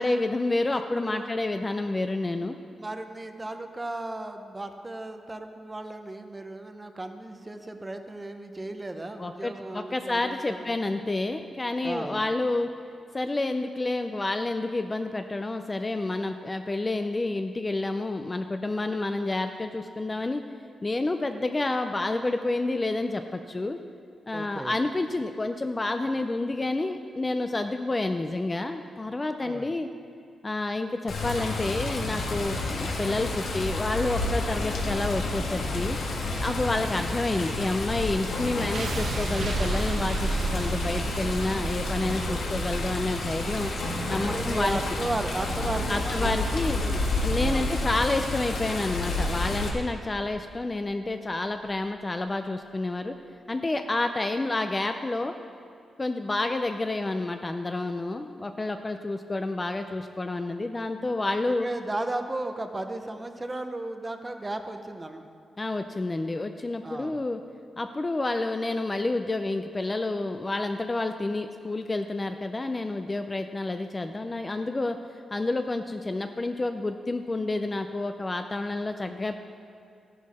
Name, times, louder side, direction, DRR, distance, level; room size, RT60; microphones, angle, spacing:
voice 1, 0.0-2.6 9.2-12.7 13.1-20.4 20.8-23.8 24.3-29.9 30.4-36.0 36.4-43.7 44.1-44.8 45.9-46.8 47.2-53.1 53.5-55.3 56.0-61.7 65.6-67.4 67.8-75.0 75.3-79.4, left 2 dB, 20° left, 7 dB, 0.4 m, -29 dB
voice 2, 0.7-1.3 2.7-10.7 11.8-12.2 24.3-24.8 29.4-29.7 44.2-47.7 61.5-65.3 66.8-67.2, right 2 dB, 15° right, 7 dB, 0.7 m, -35 dB
Water, 31.1-49.7, left 2 dB, 70° left, 1.8 m, -30 dB
sound 1, 38.7-50.7, right 3 dB, 50° right, 0.9 m, -34 dB
14.0 x 11.0 x 4.2 m, 2.5 s
wide cardioid pair, 160°, 0 cm